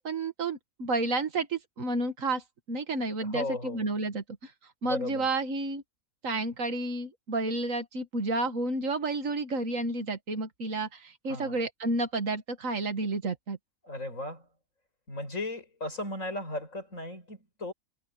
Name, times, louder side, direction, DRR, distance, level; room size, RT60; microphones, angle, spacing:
voice 1, 0.0-2.4 2.7-4.5 4.8-5.8 6.2-13.6, right 2 dB, 70° right, 2.2 m, -31 dB
voice 2, 3.2-3.8 4.8-5.3 11.3-11.6 13.8-14.5 15.1-17.7, left 2 dB, 65° left, 8.3 m, -36 dB
omnidirectional pair, 1.5 m